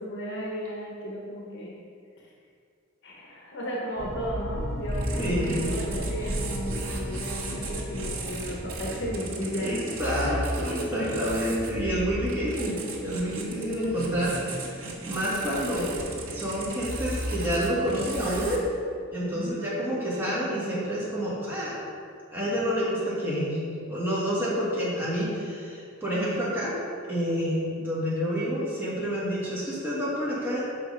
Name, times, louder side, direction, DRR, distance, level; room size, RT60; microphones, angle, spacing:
voice 1, 0.0-1.8 3.0-9.9 10.9-11.2 19.3-19.6, equal, 60° left, -3 dB, 0.9 m, -35 dB
sound 1, 4.0-9.1, equal, 15° left, 1.1 m, -33 dB
sound 2, 4.9-18.6, right 1 dB, 80° right, 1.3 m, -35 dB
voice 2, 5.2-5.7 9.6-15.9 16.2-18.6 19.1-21.8 22.3-23.6 23.9-26.7 27.1-30.6, equal, 10° right, -9 dB, 1.7 m, -28 dB
6.2 x 5.0 x 4.9 m, 2.3 s
head